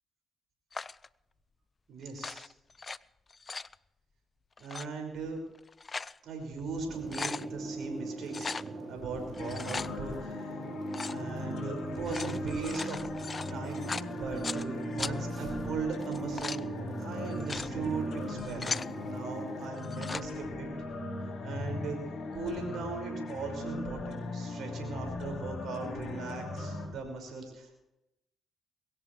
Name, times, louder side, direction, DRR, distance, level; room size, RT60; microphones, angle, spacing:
sound 1, 0.7-1.1 2.1-3.0 3.3-3.7 4.6-4.9 5.6-6.2 6.6-6.7 6.9-7.5 8.3-8.7 9.3-9.9 10.9-11.2 11.9-14.6 15.0-15.1 16.0-16.6 17.3-17.7 18.3-18.9 19.8-20.3, left 4 dB, 35° left, 0.5 m, -38 dB
voice 1, 1.9-2.5 4.6-5.4 6.2-8.5 8.9-10.5 11.1-13.0 13.5-13.8 14.1-20.7 21.4-22.0 22.3-27.8, right 4 dB, 65° right, 3 dB, 5.6 m, -39 dB
sound 2, 6.9-19.7, right 3 dB, 35° right, 4.2 m, -41 dB
sound 3, 9.4-26.8, left 2 dB, 65° left, 7.1 m, -39 dB
22.0 x 16.5 x 3.3 m, 0.88 s
hypercardioid pair, 50°, 0 cm